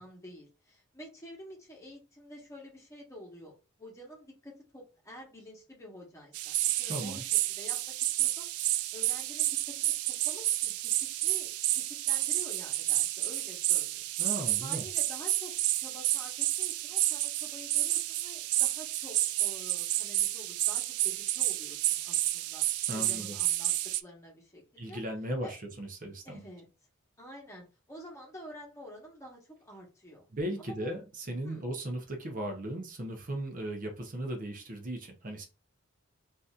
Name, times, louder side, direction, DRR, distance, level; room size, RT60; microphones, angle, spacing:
voice 1, 0.0-3.5 3.8-8.5 8.9-14.1 14.6-22.6 22.9-23.7 24.0-25.0 25.4-25.5 26.2-26.7 27.2-30.2 30.6-31.0 31.4-31.7, equal, 15° left, 1.2 m, -49 dB
sound 1, 6.3-24.0, right 15 dB, 75° right, 0.3 m, -30 dB
voice 2, 6.9-7.2 14.2-14.9 22.9-23.4 24.8-26.4 30.3-35.5, right 1 dB, 40° right, 0.8 m, -37 dB
3.9 x 2.7 x 2.4 m
head